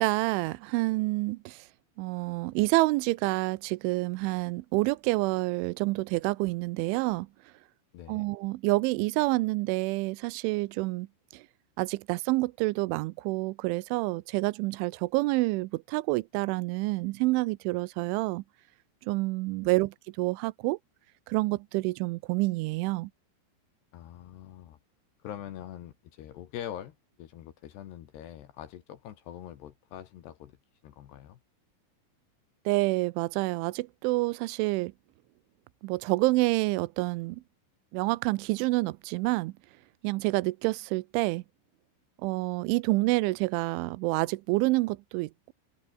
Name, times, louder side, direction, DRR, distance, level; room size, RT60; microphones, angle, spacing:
voice 1, 0.0-1.6 2.0-7.3 8.1-11.1 11.3-11.4 11.8-18.4 19.1-20.8 21.3-23.1 32.7-34.9 35.8-37.4 37.9-39.5 40.0-41.4 42.2-45.5, right 22 dB, 80° right, 2.9 m, -28 dB
voice 2, 7.9-8.3 19.6-19.8 23.9-24.8 25.2-30.6 30.8-31.4, left 11 dB, 65° left, 3.3 m, -44 dB
omnidirectional pair, 5.8 m